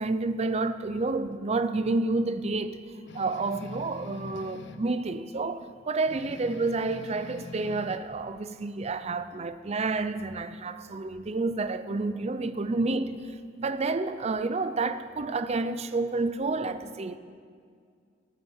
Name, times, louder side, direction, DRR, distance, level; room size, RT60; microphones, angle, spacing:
voice 1, 0.0-2.8 3.1-17.2, right 3 dB, 35° right, 0.5 m, -29 dB
sound 1, 3.1-4.9 6.0-8.0, left 2 dB, 65° left, 0.7 m, -44 dB
19.0 x 6.5 x 7.3 m
head